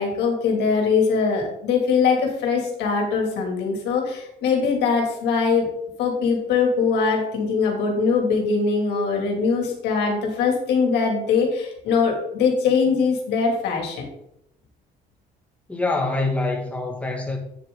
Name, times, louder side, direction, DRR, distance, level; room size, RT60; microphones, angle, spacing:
voice 1, 0.0-5.7 6.0-14.0, left 5 dB, 80° left, 2.7 m, -22 dB
voice 2, 15.7-17.4, left 2 dB, 10° left, 2.0 m, -25 dB
9.3 x 7.2 x 3.9 m
cardioid pair, 110°, 17 cm